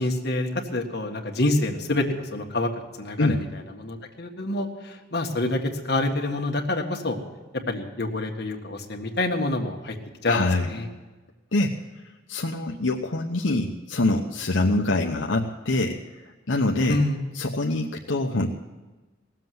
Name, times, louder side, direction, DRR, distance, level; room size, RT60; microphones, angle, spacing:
voice 1, 0.0-2.7 3.0-3.4 3.8-7.2 7.7-9.9 10.2-10.4 10.7-10.9 16.9-17.2, left 2 dB, 55° left, 1 dB, 1.8 m, -27 dB
voice 2, 10.2-10.7 11.5-11.8 12.3-17.0 17.3-18.5, left 2 dB, 80° left, 0 dB, 0.9 m, -25 dB
18.5 x 7.6 x 9.4 m, 1.2 s
head